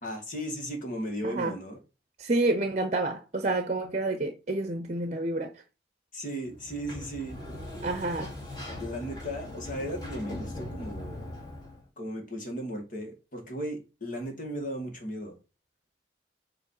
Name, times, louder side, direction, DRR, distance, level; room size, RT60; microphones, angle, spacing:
voice 1, 0.0-1.8 6.1-7.5 8.8-11.3 12.0-15.4, equal, 50° left, 2.3 m, -36 dB
voice 2, 2.2-5.5 7.8-8.3, right 2 dB, 40° right, 0.8 m, -29 dB
Sliding door, 6.5-11.8, left 1 dB, 25° left, 2.8 m, -40 dB
7.3 x 3.2 x 5.8 m
head